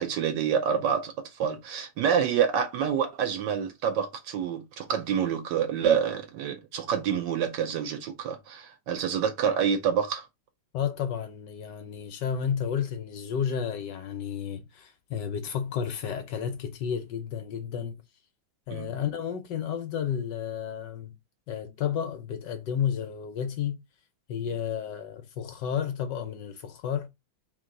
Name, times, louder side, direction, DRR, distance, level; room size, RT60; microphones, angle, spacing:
voice 1, 0.0-10.2 18.7-18.9, right 8 dB, 70° right, 1.2 m, -27 dB
voice 2, 10.7-18.0 18.7-21.1 21.5-23.8 24.3-27.1, left 8 dB, 70° left, 1.2 m, -32 dB
3.6 x 2.7 x 3.7 m
omnidirectional pair, 2.2 m